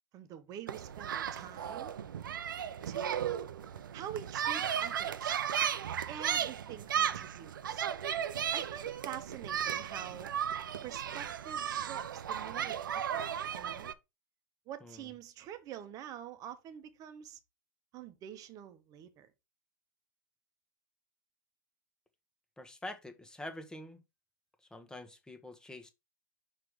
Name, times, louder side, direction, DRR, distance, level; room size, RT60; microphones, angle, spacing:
voice 1, 0.1-1.9 2.8-3.5 3.9-5.4 6.1-7.8 8.5-10.3 10.8-13.2 13.5-13.9 14.7-17.4 17.9-19.3, right 10 dB, 30° right, 1.0 m, -46 dB
sound 1, 0.7-13.9, right 9 dB, 70° right, 0.6 m, -35 dB
voice 2, 22.6-24.0 24.6-25.9, left 1 dB, 5° left, 1.1 m, -46 dB
6.0 x 3.3 x 4.7 m
figure-of-eight pair, 105°, 11 cm